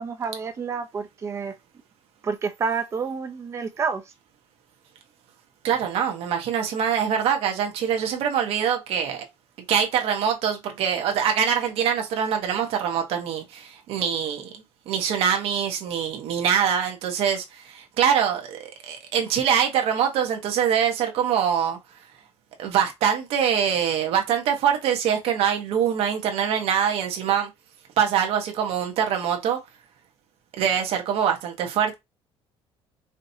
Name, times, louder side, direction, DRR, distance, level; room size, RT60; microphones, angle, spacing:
voice 1, 0.0-1.5 2.2-4.0, right 5 dB, 25° right, 0.6 m, -29 dB
voice 2, 5.6-9.2 9.7-21.8 22.6-27.5 28.0-29.6 30.6-32.0, right 8 dB, 65° right, 1.1 m, -24 dB
5.0 x 2.8 x 2.7 m
cardioid pair, 170°, 11 cm